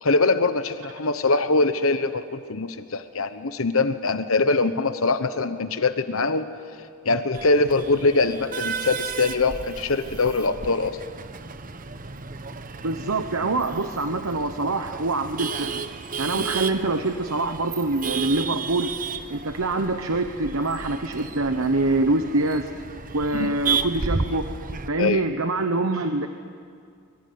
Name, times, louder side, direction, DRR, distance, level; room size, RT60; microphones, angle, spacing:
voice 1, 0.0-6.5 7.0-11.0 16.4-16.5 23.3-23.5 25.0-25.2, left 3 dB, 70° left, 10 dB, 1.1 m, -23 dB
Male speech man speaking / Laughter / Chatter, 7.3-24.9, right 5 dB, 40° right, 1.0 m, -33 dB
voice 2, 12.8-15.8 16.2-18.9 19.3-22.7 23.1-24.5 24.9-26.3, right 2 dB, 70° right, 7 dB, 1.2 m, -25 dB
24.5 x 23.5 x 9.6 m, 2.2 s
head